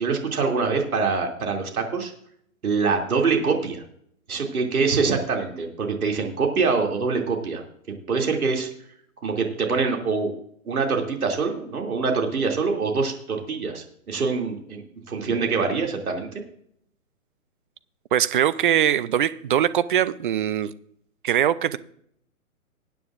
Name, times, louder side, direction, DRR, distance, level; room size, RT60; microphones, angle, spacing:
voice 1, 0.0-2.1 2.6-3.8 4.3-7.6 8.1-8.7 9.2-10.3 10.7-14.8 15.1-16.4, right 4 dB, 80° right, 2 dB, 2.8 m, -24 dB
voice 2, 18.1-20.7 21.2-21.8, right 10 dB, 40° right, 16 dB, 0.5 m, -22 dB
19.5 x 9.3 x 2.5 m, 0.67 s
hypercardioid pair, 145°, 43 cm